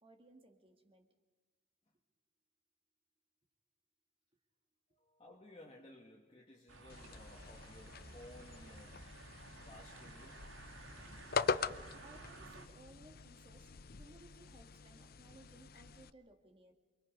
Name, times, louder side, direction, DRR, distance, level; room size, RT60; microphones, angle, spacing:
voice 1, 0.0-1.1 12.0-16.7, right 1 dB, 30° right, 4 dB, 1.8 m, -61 dB
voice 2, 5.0-9.1 9.7-10.4, left 1 dB, 30° left, -3 dB, 2.0 m, -57 dB
sound 1, 6.7-12.7, right 2 dB, 80° right, 2.3 m, -54 dB
sound 2, 6.9-16.1, left 5 dB, 50° left, 0.6 m, -43 dB
28.5 x 23.0 x 5.3 m, 1.2 s
head